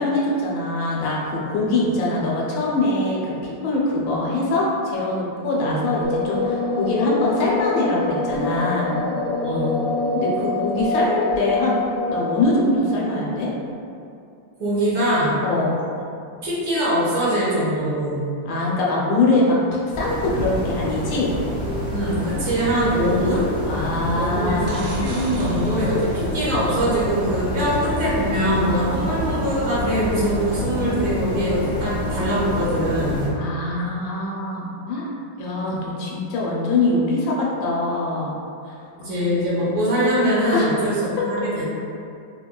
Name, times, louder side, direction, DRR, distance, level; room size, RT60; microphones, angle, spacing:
voice 1, 0.0-9.0 10.1-11.8 12.1-13.5 15.4-15.8 18.4-21.3 23.7-24.7 28.9-29.1 33.3-38.3 40.5-40.7, left 2 dB, 90° left, -4 dB, 1.4 m, -23 dB
sound 1, 6.0-13.6, left 3 dB, 55° left, 1.5 m, -26 dB
voice 2, 9.4-9.8 14.6-15.4 16.4-18.2 21.9-23.5 24.1-33.3 35.7-35.9 39.0-41.0 41.2-41.7, equal, 60° right, -9 dB, 1.5 m, -22 dB
sound 2, 19.9-33.3, equal, 35° left, 1.1 m, -27 dB
sound 3, 24.6-26.8 31.0-31.1, right 1 dB, 75° right, 1.2 m, -39 dB
4.0 x 2.2 x 2.3 m, 2.5 s
omnidirectional pair, 2.0 m